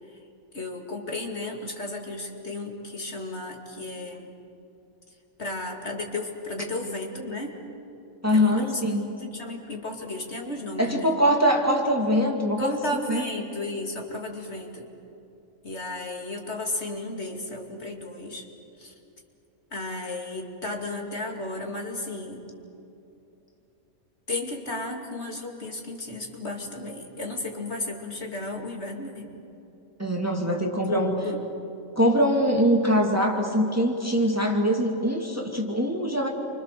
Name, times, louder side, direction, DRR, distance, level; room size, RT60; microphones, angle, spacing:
voice 1, 0.5-4.3 5.4-7.5 8.3-8.8 9.2-11.2 12.6-14.9 15.6-18.4 18.8-18.9 19.7-22.4 24.3-29.4 30.9-31.5, left 2 dB, 50° left, 1 dB, 2.8 m, -34 dB
voice 2, 8.2-9.1 10.8-13.2 30.0-31.2 32.0-36.3, equal, 10° right, 0 dB, 2.3 m, -23 dB
29.0 x 25.5 x 6.8 m, 2.8 s
omnidirectional pair, 1.4 m